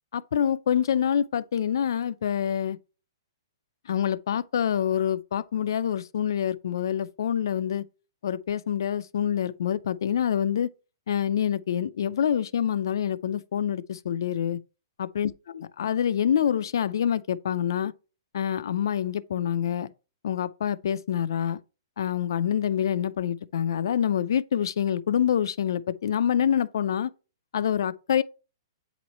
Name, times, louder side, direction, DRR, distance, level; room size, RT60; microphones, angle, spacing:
voice 1, 0.1-2.8 3.9-7.8 8.2-10.7 11.1-14.6 15.0-17.9 18.3-19.9 20.2-21.6 22.0-27.1 27.5-28.2, left 9 dB, 60° left, 0.4 m, -26 dB
8.5 x 3.0 x 4.1 m
hypercardioid pair, 175°, 2 cm